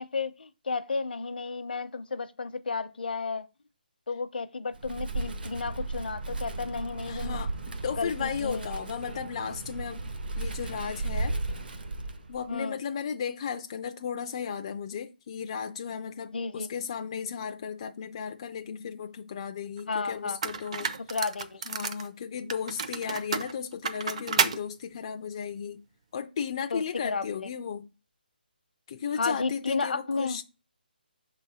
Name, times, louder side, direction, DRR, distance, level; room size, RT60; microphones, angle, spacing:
voice 1, 0.0-3.5 4.1-7.4 8.0-8.7 12.5-12.8 16.3-16.7 19.9-20.4 21.1-21.6 26.7-27.2 29.1-30.4, left 4 dB, 70° left, 0.7 m, -32 dB
Wind, 4.7-12.5, right 2 dB, 70° right, 0.9 m, -35 dB
voice 2, 7.1-7.5 7.8-10.0 10.4-11.4 12.3-20.9 21.7-25.8 26.1-27.9 28.9-30.4, left 7 dB, 30° left, 0.3 m, -35 dB
sound 1, 19.8-19.9 20.4-22.1 22.5-24.6, right 5 dB, 40° right, 0.5 m, -30 dB
5.9 x 3.9 x 4.1 m
hypercardioid pair, 165°, 5 cm